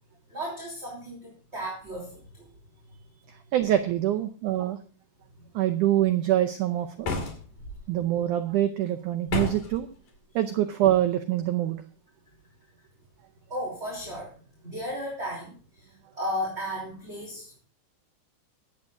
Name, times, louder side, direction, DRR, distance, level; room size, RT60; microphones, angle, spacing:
voice 1, 0.3-2.5 7.5-7.6 13.5-14.3 14.6-17.5, equal, 20° right, -3 dB, 3.0 m, -35 dB
voice 2, 3.5-4.8 5.6-7.1 7.9-9.9 10.4-11.8, right 12 dB, 90° right, 8 dB, 1.7 m, -25 dB
sound 1, 7.0-7.8 9.3-9.8, left 3 dB, 55° left, 3.5 m, -31 dB
24.5 x 8.5 x 2.6 m, 0.38 s
omnidirectional pair, 4.6 m